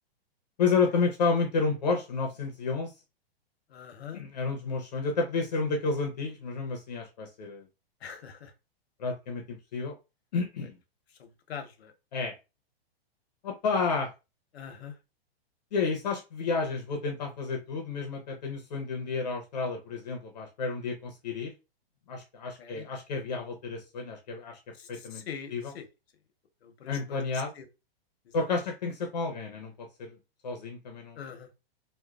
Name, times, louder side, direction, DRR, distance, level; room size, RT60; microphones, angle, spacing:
voice 1, 0.6-2.9 4.1-7.6 9.0-9.9 10.3-10.8 12.1-12.3 13.4-14.1 15.7-21.5 22.1-24.6 24.9-25.2 25.5-25.6 26.9-27.5 28.3-30.2 30.4-31.2, left 4 dB, 45° left, 0.6 m, -30 dB
voice 2, 3.7-4.2 8.0-8.5 11.1-11.9 14.5-15.0 22.6-22.9 24.7-25.9 26.6-27.7 28.2-28.3 28.6-28.7 31.1-31.5, left 7 dB, 85° left, 0.9 m, -43 dB
3.0 x 2.2 x 2.3 m
hypercardioid pair, 175°, 31 cm